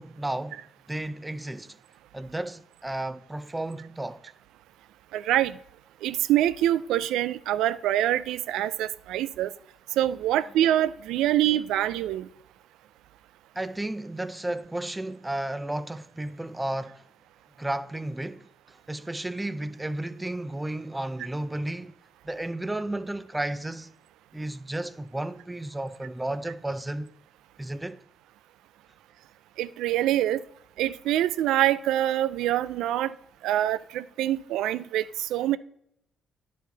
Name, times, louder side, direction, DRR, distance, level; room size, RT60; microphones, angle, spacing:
voice 1, 0.0-1.8 2.1-4.2 13.5-17.0 17.6-21.9 22.2-23.9 24.3-27.2 27.6-28.0, right 1 dB, 10° right, 0.5 m, -33 dB
voice 2, 5.1-5.6 6.0-9.5 10.0-12.3 29.6-30.4 30.8-33.1 33.4-35.6, right 13 dB, 90° right, 0.3 m, -25 dB
10.0 x 4.6 x 4.0 m
cardioid pair, 90°, 0 cm